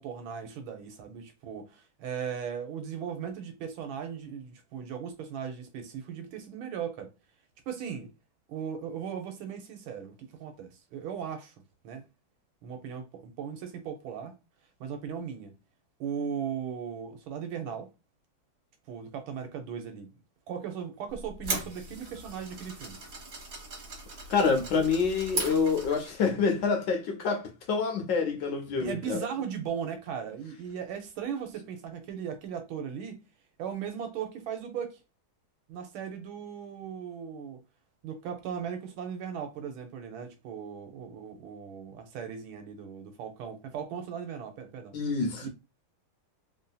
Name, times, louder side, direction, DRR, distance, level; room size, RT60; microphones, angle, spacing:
voice 1, 0.0-7.1 7.7-8.1 8.5-11.5 11.8-12.0 12.6-14.4 14.8-15.5 16.0-17.9 18.9-20.1 20.5-23.0 28.7-33.2 33.6-35.0 35.7-37.6 38.0-45.0 45.4-45.5, right 7 dB, 80° right, 1.5 m, -37 dB
sound 1, 21.1-26.2, right 2 dB, 50° right, 1.3 m, -38 dB
voice 2, 24.3-29.2 44.9-45.5, left 5 dB, 70° left, 1.1 m, -27 dB
3.5 x 2.6 x 2.3 m
omnidirectional pair, 2.2 m